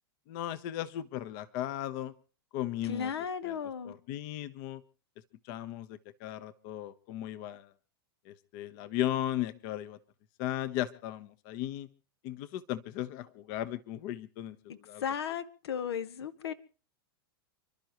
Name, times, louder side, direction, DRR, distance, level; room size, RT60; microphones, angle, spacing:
voice 1, 0.3-2.1 2.5-3.1 3.4-3.6 3.8-4.8 5.4-7.7 8.2-10.0 10.4-11.9 12.2-15.0, left 13 dB, 50° left, 12 dB, 1.3 m, -36 dB
voice 2, 2.9-3.9 15.0-16.5, left 7 dB, 85° left, 13 dB, 1.4 m, -35 dB
29.5 x 12.0 x 3.1 m, 0.37 s
hypercardioid pair, 125°, 13 cm